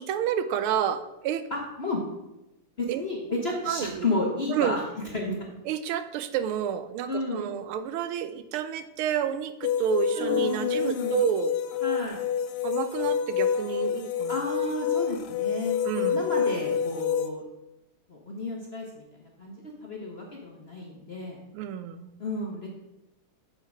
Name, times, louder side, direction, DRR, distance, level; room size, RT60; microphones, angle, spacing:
voice 1, 0.0-1.4 2.9-3.0 3.7-4.1 4.5-4.8 5.7-11.5 12.6-14.3 15.8-16.2 21.5-22.1, right 9 dB, 80° right, 11 dB, 1.4 m, -29 dB
voice 2, 1.5-2.0 2.8-5.3 7.1-7.5 10.2-11.2 11.8-12.2 13.0-13.1 14.3-17.4 18.1-21.4 22.2-22.7, left 2 dB, 40° left, -1 dB, 1.0 m, -32 dB
sound 1, 9.6-17.3, left 8 dB, 90° left, 0.8 m, -28 dB
7.8 x 4.6 x 5.9 m, 0.94 s
omnidirectional pair, 2.4 m